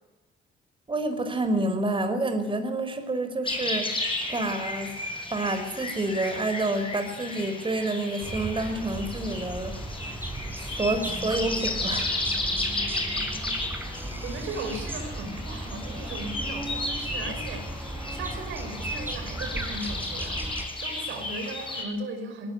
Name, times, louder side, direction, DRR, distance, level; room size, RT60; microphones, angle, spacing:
voice 1, 0.9-5.0 5.3-9.7 10.5-12.1, right 2 dB, 25° right, 7 dB, 5.3 m, -28 dB
sound 1, 3.4-21.8, left 2 dB, 25° left, 7.2 m, -34 dB
sound 2, 8.2-20.7, right 1 dB, 10° right, 6.2 m, -36 dB
voice 2, 14.2-22.5, right 2 dB, 85° right, 5 dB, 6.0 m, -37 dB
21.0 x 21.0 x 9.8 m, 1.1 s
cardioid pair, 90°, 20 cm